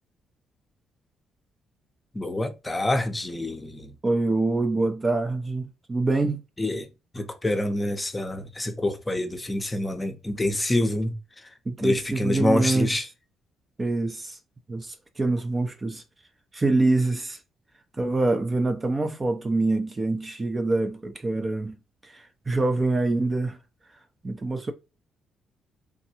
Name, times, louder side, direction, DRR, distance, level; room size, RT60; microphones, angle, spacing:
voice 1, 2.1-3.9 6.6-6.9 7.1-11.1 11.4-11.5 11.8-13.1, left 1 dB, 15° left, 0.7 m, -26 dB
voice 2, 4.0-6.4 11.7-12.9 13.8-14.4 14.7-16.0 16.5-17.4 17.9-23.6 24.2-24.7, right 2 dB, 25° right, 0.5 m, -25 dB
3.5 x 2.2 x 2.7 m
cardioid pair, 90°, 0 cm